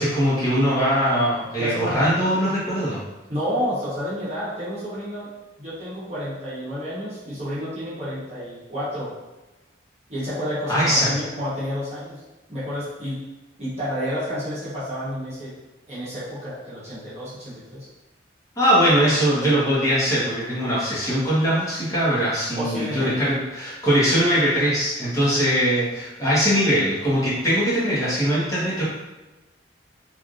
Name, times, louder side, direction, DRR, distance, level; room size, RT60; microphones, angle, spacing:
voice 1, 0.0-3.0 10.7-11.1 18.6-28.8, equal, 20° left, -9 dB, 1.2 m, -21 dB
voice 2, 1.6-2.1 3.3-5.3 5.6-9.1 10.1-12.2 12.5-13.2 13.6-15.5 15.9-17.9 21.0-21.2 22.6-23.1, equal, 35° right, -10 dB, 1.1 m, -30 dB
3.2 x 2.6 x 2.5 m, 1.1 s
head